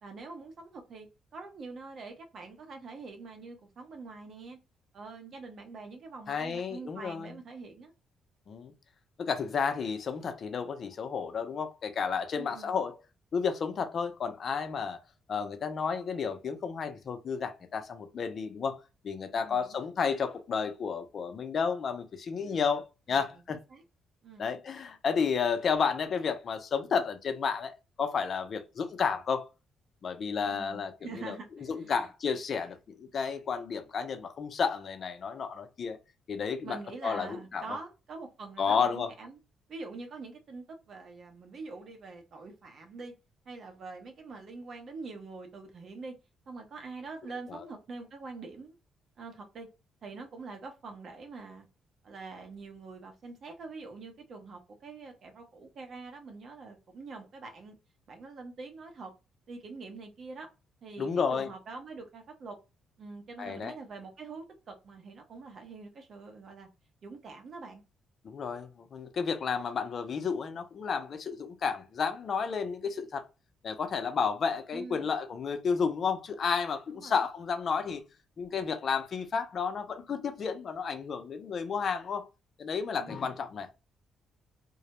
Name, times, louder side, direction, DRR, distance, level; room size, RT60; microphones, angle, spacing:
voice 1, 0.0-4.6 4.9-7.9 12.3-12.7 19.4-19.9 22.4-22.8 23.1-23.4 23.7-23.8 24.2-24.5 30.3-32.1 36.6-39.4 39.7-43.1 43.5-46.1 46.5-48.8 49.2-49.7 50.0-51.7 52.0-57.8 58.1-59.1 59.5-60.5 60.8-62.6 63.0-66.7 67.0-67.8 74.7-75.1 76.9-77.2 83.0-83.2, right 3 dB, 55° right, 0.7 m, -45 dB
voice 2, 6.3-7.3 8.5-8.7 9.2-13.0 13.3-15.0 15.3-18.8 19.0-23.6 24.4-27.7 28.0-29.5 30.0-31.4 31.7-36.0 36.3-36.8 37.0-37.6 38.6-39.1 47.5-47.6 61.0-61.5 63.4-63.7 68.2-73.2 73.6-78.0 78.4-82.2 82.6-83.7, left 6 dB, 50° left, 0.5 m, -32 dB
2.2 x 2.0 x 2.8 m
cardioid pair, 90°, 0 cm